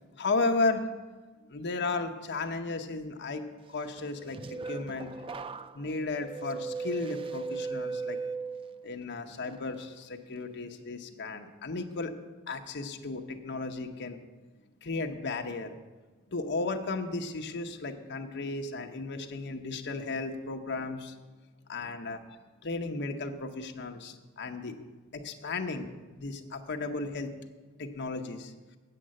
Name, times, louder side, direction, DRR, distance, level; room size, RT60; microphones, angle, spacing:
voice 1, 0.1-0.8 1.5-5.2 5.7-8.2 8.8-12.1 12.5-14.2 14.8-15.7 16.3-21.1 21.7-22.4 22.6-24.8 25.1-25.9 26.2-27.3 27.8-28.5, left 3 dB, 50° left, 5 dB, 0.9 m, -34 dB
sound 1, 4.0-9.0 9.4-9.8, right 4 dB, 25° right, 0.3 m, -38 dB
8.5 x 7.7 x 7.5 m, 1.3 s
head